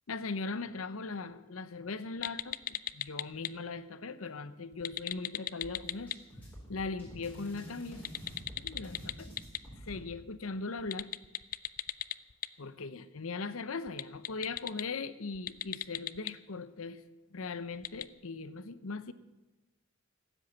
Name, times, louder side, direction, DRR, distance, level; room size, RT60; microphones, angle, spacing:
voice 1, 0.1-6.1 6.7-8.0 8.6-9.3 9.8-11.1 12.6-17.0 17.3-19.1, left 4 dB, 90° left, 0.8 m, -39 dB
sound 1, 2.2-3.5 4.7-6.1 7.9-9.6 10.8-12.5 13.9-14.8 15.4-16.3 17.8-18.0, left 12 dB, 40° left, 0.4 m, -35 dB
sound 2, 5.6-10.0, equal, 10° left, 5.0 m, -48 dB
15.5 x 8.1 x 8.8 m
head